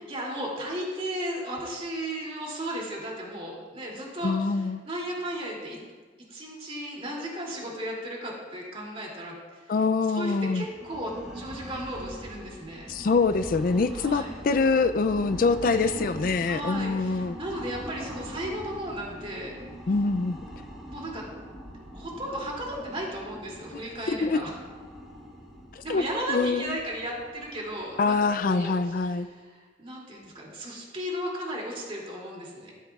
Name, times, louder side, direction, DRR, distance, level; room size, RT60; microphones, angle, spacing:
voice 1, 0.1-5.8 6.3-9.7 10.1-12.9 13.9-14.4 15.6-19.5 20.9-21.2 21.9-24.5 25.8-28.2 28.4-32.7, right 1 dB, 30° right, -2 dB, 2.7 m, -35 dB
voice 2, 4.2-4.8 9.7-10.7 12.9-17.4 19.9-20.4 24.1-24.4 25.7-26.8 28.0-29.3, left 4 dB, 50° left, 11 dB, 0.4 m, -25 dB
sound 1, 10.6-29.2, right 1 dB, 5° right, 3.2 m, -43 dB
14.5 x 13.5 x 2.4 m, 1.5 s
head